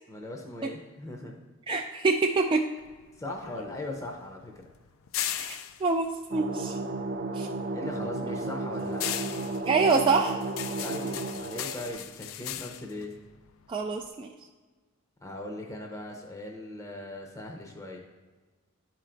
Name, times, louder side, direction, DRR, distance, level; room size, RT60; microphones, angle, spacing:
voice 1, 0.1-1.4 3.2-4.5 7.7-9.2 10.8-13.2 15.2-18.0, left 1 dB, 15° left, 1 dB, 0.7 m, -39 dB
voice 2, 1.7-2.6 5.3-6.8 7.3-7.5 9.7-10.4 13.7-14.3, right 4 dB, 25° right, 1 dB, 0.3 m, -26 dB
sound 1, 2.8-7.3 7.6-14.1, left 11 dB, 65° left, 0.4 m, -38 dB
sound 2, 6.3-11.9, right 2 dB, 55° right, 0.7 m, -33 dB
11.0 x 4.5 x 3.8 m, 1.3 s
head